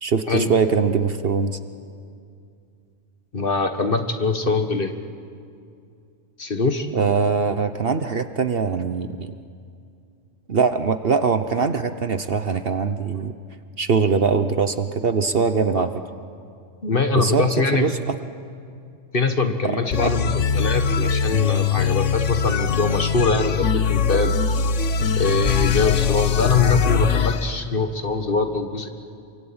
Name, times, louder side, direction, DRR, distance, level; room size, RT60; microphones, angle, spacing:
voice 1, 0.0-1.6 6.9-9.3 10.5-13.3 13.8-15.9 17.1-18.1 20.0-20.2, right 5 dB, 50° right, 9 dB, 1.1 m, -22 dB
voice 2, 3.3-4.9 6.4-6.9 15.7-15.8 16.8-17.9 19.1-24.3 25.2-28.9, left 3 dB, 45° left, 7 dB, 1.6 m, -23 dB
sound 1, 19.9-27.4, left 6 dB, 65° left, 1.3 m, -21 dB
27.5 x 24.0 x 8.8 m, 2.4 s
omnidirectional pair, 1.4 m